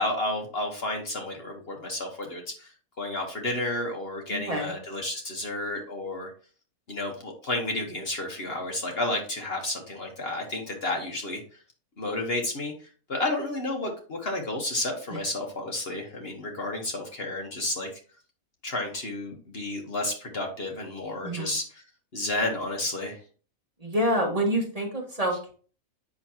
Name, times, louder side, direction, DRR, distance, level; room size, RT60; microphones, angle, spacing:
voice 1, 0.0-2.7 3.0-6.3 6.9-11.4 12.0-17.9 18.6-21.8 22.1-23.2, left 2 dB, 45° left, 2 dB, 1.4 m, -31 dB
voice 2, 4.3-4.7 21.2-21.5 23.8-25.5, equal, 25° right, -1 dB, 1.8 m, -27 dB
7.5 x 5.9 x 2.8 m, 0.40 s
omnidirectional pair, 1.4 m